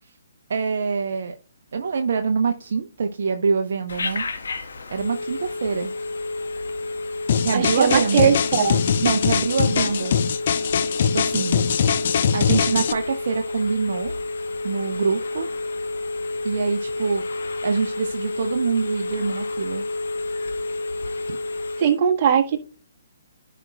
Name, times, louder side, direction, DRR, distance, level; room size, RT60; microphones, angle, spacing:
voice 1, 0.5-1.4 1.7-4.2 4.9-5.9 7.4-8.3 9.0-10.2 11.0-11.6 12.3-14.1 14.6-15.5 16.4-17.2 17.6-19.8 21.3-21.4, right 5 dB, 55° right, 6 dB, 0.8 m, -25 dB
Telephone, 3.9-22.0, left 2 dB, 65° left, 1.2 m, -30 dB
sound 1, 7.3-12.9, left 7 dB, 50° left, 0.7 m, -22 dB
voice 2, 7.5-8.8 21.8-22.6, right 8 dB, 35° right, 3 dB, 1.4 m, -19 dB
14.5 x 5.1 x 2.3 m, 0.38 s
figure-of-eight pair, 130°, 0 cm